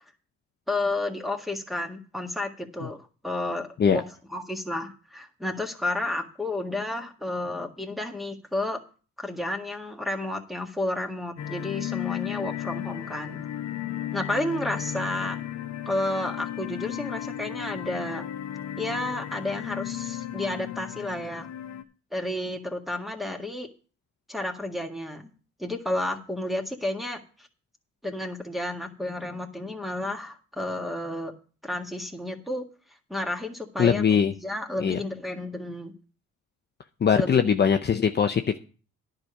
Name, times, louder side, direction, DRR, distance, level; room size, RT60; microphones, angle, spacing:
voice 1, 0.7-3.0 3.2-4.0 4.3-8.8 9.2-13.4 14.1-15.4 15.9-18.2 18.8-21.5 22.1-23.7 24.3-25.3 25.6-27.2 28.0-31.3 31.6-32.6 33.1-35.9 37.1-37.6, left 1 dB, ahead, 1 dB, 1.7 m, -31 dB
sound 1, 11.4-21.8, left 11 dB, 60° left, 1.0 m, -34 dB
voice 2, 33.8-34.3 34.8-35.0 37.0-38.6, left 7 dB, 35° left, 6 dB, 0.7 m, -21 dB
10.5 x 5.1 x 7.9 m, 0.38 s
cardioid pair, 90°, 30 cm